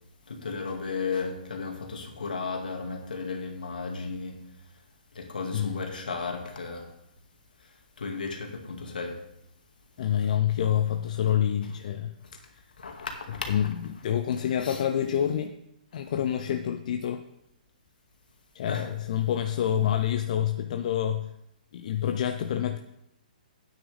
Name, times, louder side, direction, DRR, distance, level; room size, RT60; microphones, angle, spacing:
voice 1, 0.3-4.4 5.1-6.9 8.0-9.2 12.8-13.5 14.6-14.8 18.7-18.9, left 4 dB, 75° left, 2.2 m, -34 dB
voice 2, 10.0-12.6 13.5-15.5 15.9-17.2 18.5-21.3 21.7-22.8, left 10 dB, 50° left, 0.6 m, -27 dB
12.0 x 9.3 x 3.5 m
hypercardioid pair, 130°, 5 cm